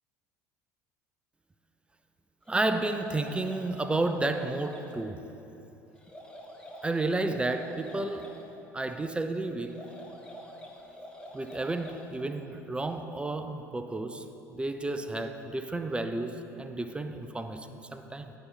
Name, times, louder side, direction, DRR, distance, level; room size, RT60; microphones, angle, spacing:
sound 1, 2.5-4.9 5.9-8.4 9.6-12.1, equal, 10° left, 1.0 m, -46 dB
voice 1, 2.5-5.2 6.8-8.3 8.7-9.8 11.3-14.2 14.5-18.3, right 2 dB, 10° right, 8 dB, 0.4 m, -31 dB
9.7 x 4.0 x 5.5 m, 2.9 s
figure-of-eight pair, 65°, 9 cm